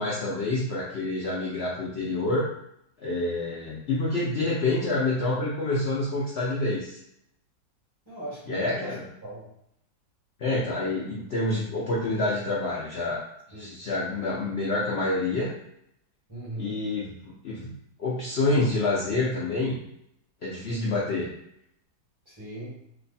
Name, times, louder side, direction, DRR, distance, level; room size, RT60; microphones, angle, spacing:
voice 1, 0.0-2.5 3.0-7.0 8.5-9.0 10.4-13.2 13.5-15.5 16.6-19.8 20.4-21.3, left 2 dB, 75° left, -5 dB, 0.6 m, -27 dB
voice 2, 8.0-9.5 13.5-13.8 16.3-16.8 22.2-22.8, right 1 dB, 15° right, -8 dB, 1.2 m, -40 dB
3.0 x 2.3 x 4.0 m, 0.76 s
omnidirectional pair, 1.9 m